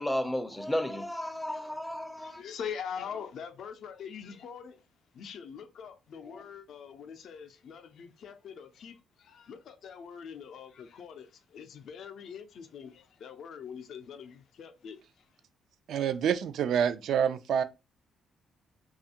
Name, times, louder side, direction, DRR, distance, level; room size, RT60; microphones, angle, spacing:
voice 1, 0.0-2.4 6.3-6.4, left 1 dB, 10° left, 0.4 m, -33 dB
voice 2, 2.2-4.9 5.1-15.3, left 7 dB, 70° left, 0.4 m, -43 dB
voice 3, 15.9-17.6, right 8 dB, 75° right, 0.3 m, -27 dB
2.5 x 2.3 x 2.8 m
cardioid pair, 90°, 0 cm